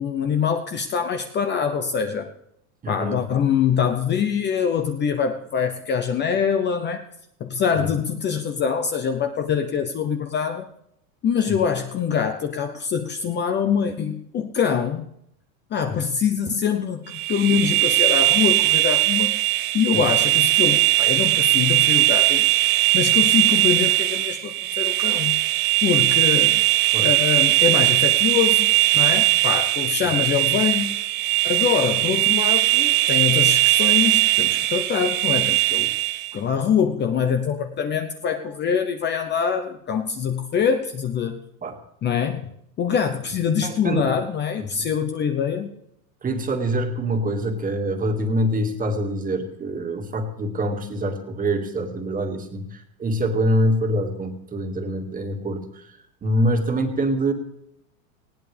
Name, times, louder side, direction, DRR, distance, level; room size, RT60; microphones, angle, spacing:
voice 1, 0.0-2.3 2.9-7.0 7.4-10.7 11.2-15.1 15.7-19.4 19.7-25.4 25.8-26.6 27.0-31.0 31.4-35.9 36.3-41.4 42.0-42.5 42.8-45.7, left 7 dB, 25° left, 6 dB, 0.8 m, -24 dB
voice 2, 2.8-3.2 7.7-7.9 15.9-16.0 19.9-20.0 26.9-27.1 41.6-41.8 43.6-44.2 44.6-44.9 46.2-55.9 56.2-57.3, right 1 dB, 20° right, 4 dB, 2.0 m, -25 dB
sound 1, 17.1-36.3, right 18 dB, 65° right, 1.5 m, -19 dB
19.5 x 16.5 x 3.4 m, 0.75 s
supercardioid pair, 130°, 43 cm